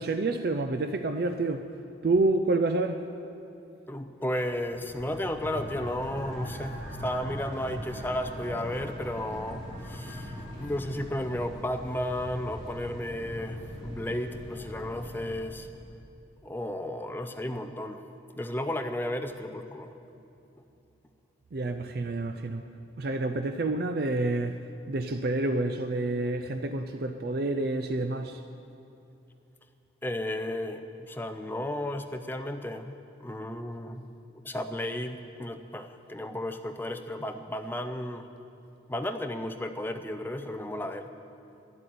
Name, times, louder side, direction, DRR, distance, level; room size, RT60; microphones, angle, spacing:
voice 1, 0.0-1.7 2.0-3.0 21.5-22.6 23.0-24.6 24.9-28.4, right 2 dB, 55° right, 0.4 m, -28 dB
voice 2, 3.9-15.7 16.4-18.0 18.3-20.0 30.0-34.1 34.4-38.3 38.9-41.1, left 1 dB, 10° left, 0.5 m, -34 dB
sound 1, 4.2-15.4, equal, 25° right, 3.7 m, -41 dB
12.0 x 7.9 x 9.2 m
head